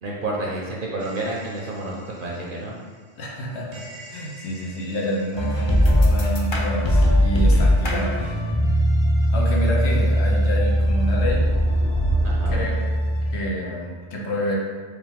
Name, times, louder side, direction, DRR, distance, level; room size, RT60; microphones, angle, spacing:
voice 1, 0.0-2.7 12.2-12.6, right 2 dB, 60° right, -3 dB, 0.7 m, -30 dB
sound 1, 1.0-2.1 3.7-5.5 9.5-12.6, right 1 dB, 85° right, 1.0 m, -31 dB
voice 2, 3.2-8.3 9.3-11.5 12.5-12.9 13.3-14.6, equal, 80° left, -2 dB, 1.1 m, -28 dB
sound 2, 5.4-13.3, equal, 40° left, 0.4 m, -20 dB
4.8 x 2.2 x 3.5 m, 1.5 s
omnidirectional pair, 1.1 m